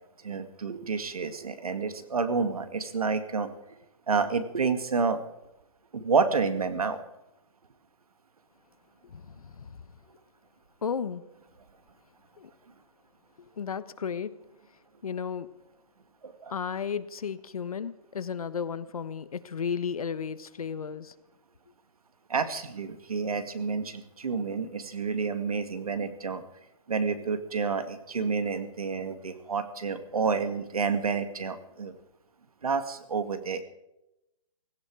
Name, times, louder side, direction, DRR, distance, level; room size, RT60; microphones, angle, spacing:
voice 1, 0.2-3.5 4.1-5.2 5.9-7.0 16.2-16.5 22.3-26.4 26.9-31.9 32.6-33.6, right 5 dB, 85° right, 10 dB, 2.2 m, -29 dB
voice 2, 9.1-9.8 10.8-11.2 12.4-12.5 13.6-14.3 15.0-15.5 16.5-21.1, left 6 dB, 80° left, 14 dB, 1.3 m, -34 dB
17.0 x 16.5 x 4.9 m, 0.90 s
hypercardioid pair, 155°, 18 cm